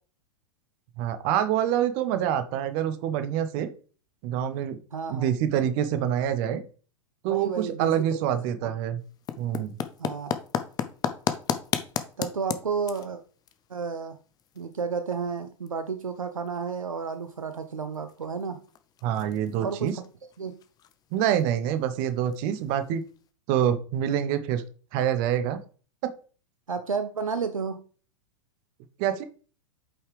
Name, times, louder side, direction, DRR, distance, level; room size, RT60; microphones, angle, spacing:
voice 1, 1.0-3.7 4.2-4.8 5.1-6.6 7.2-9.0 9.4-9.7 19.0-19.9 21.1-23.0 23.5-24.6 24.9-25.6 26.0-26.1 29.0-29.2, right 10 dB, 40° right, 11 dB, 0.9 m, -26 dB
voice 2, 4.9-5.3 7.3-8.2 8.6-8.7 10.0-10.3 12.2-13.2 13.7-14.2 14.6-18.6 19.6-19.9 20.4-20.5 26.7-27.8, right 5 dB, 75° right, 9 dB, 0.7 m, -31 dB
sound 1, 9.0-23.3, left 9 dB, 20° left, 0.7 m, -37 dB
8.7 x 5.5 x 3.3 m, 0.40 s
figure-of-eight pair, 95°, 17 cm